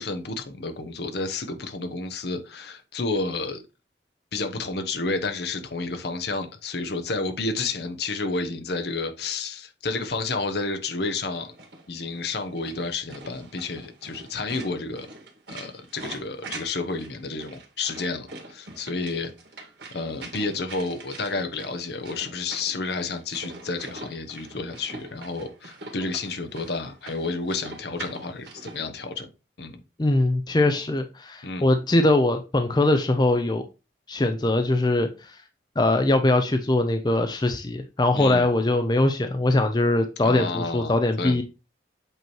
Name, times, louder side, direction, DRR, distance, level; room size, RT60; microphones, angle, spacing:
voice 1, 0.0-3.6 4.3-11.5 11.9-15.1 15.5-19.3 19.9-29.3 29.6-29.8 31.4-31.7 38.1-38.5 40.2-41.4, left 3 dB, 60° left, 0.9 m, -30 dB
sound 1, 11.3-28.8, right 2 dB, 65° right, 1.8 m, -43 dB
voice 2, 30.0-33.6 34.1-35.4 35.8-41.4, left 2 dB, 20° left, 0.5 m, -22 dB
7.9 x 3.0 x 4.6 m
head